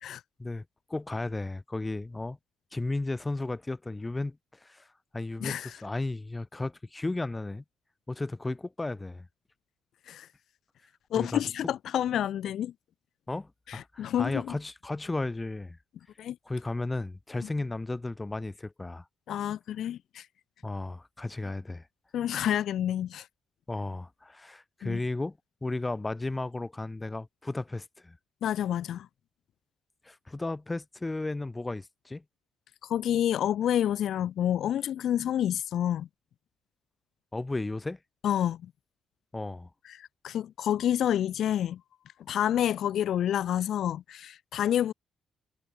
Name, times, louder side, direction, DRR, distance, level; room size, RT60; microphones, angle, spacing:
voice 1, 0.9-2.4 2.7-4.9 5.1-7.6 8.1-9.3 11.2-11.4 13.3-15.8 16.5-19.1 20.6-21.9 23.7-28.2 30.0-32.2 37.3-38.0 39.3-39.7, left 2 dB, 15° left, 3.9 m, -34 dB
voice 2, 5.4-5.8 10.1-10.3 11.1-12.7 13.7-14.5 16.2-16.4 17.4-17.5 19.3-20.3 22.1-23.3 24.8-25.0 28.4-29.1 32.8-36.1 38.2-38.7 39.8-41.8 42.3-44.9, left 10 dB, 70° left, 1.7 m, -29 dB
cardioid pair, 90°, 0 cm